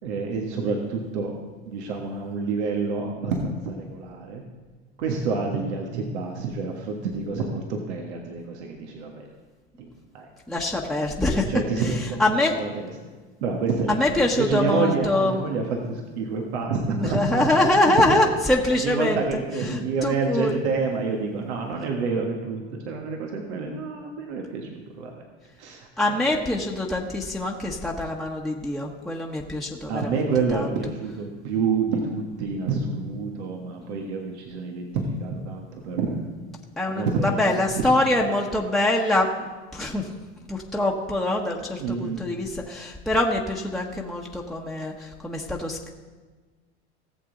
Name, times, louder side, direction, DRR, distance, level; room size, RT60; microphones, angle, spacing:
voice 1, 0.0-1.3 1.7-4.4 5.0-9.3 9.8-9.9 10.1-10.3 11.5-12.2 12.6-12.9 13.4-17.9 18.7-24.7 25.0-25.2 25.6-26.2 29.9-36.3 36.9-38.2 41.8-42.2, right 4 dB, 80° right, 1 dB, 1.6 m, -28 dB
voice 2, 10.5-11.5 12.2-12.5 13.9-15.4 17.0-19.4 19.7-20.5 26.0-30.2 30.5-30.7 36.8-39.5 39.7-40.1 40.5-45.9, left 1 dB, ahead, -2 dB, 1.3 m, -24 dB
18.0 x 7.3 x 3.9 m, 1.3 s
hypercardioid pair, 90°, 33 cm